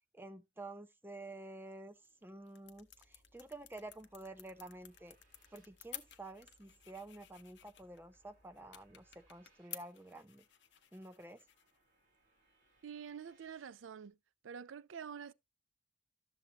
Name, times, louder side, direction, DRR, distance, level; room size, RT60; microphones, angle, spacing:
voice 1, 0.1-5.2 5.5-10.4 10.9-11.4, right 2 dB, 10° right, 0.5 m, -50 dB
sound 1, 1.9-13.4, left 11 dB, 65° left, 0.8 m, -56 dB
sound 2, 2.6-9.5, equal, 20° left, 5.1 m, -72 dB
sound 3, 3.9-14.1, right 3 dB, 40° right, 3.2 m, -75 dB
voice 2, 12.8-14.2 14.4-15.3, right 7 dB, 85° right, 0.4 m, -47 dB
12.0 x 7.0 x 2.8 m
head